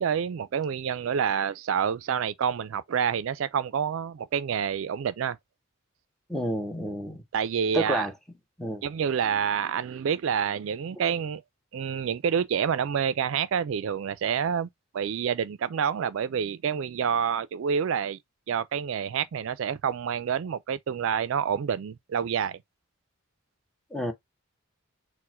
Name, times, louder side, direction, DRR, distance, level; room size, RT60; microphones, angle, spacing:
voice 1, 0.0-5.4 7.3-8.1 8.8-11.4 11.7-14.7 14.9-18.2 18.5-22.6, right 7 dB, 65° right, 0.3 m, -28 dB
voice 2, 6.3-7.2 7.7-8.1 8.6-8.8 23.9-24.1, right 1 dB, ahead, 0.7 m, -29 dB
4.5 x 2.1 x 4.2 m
head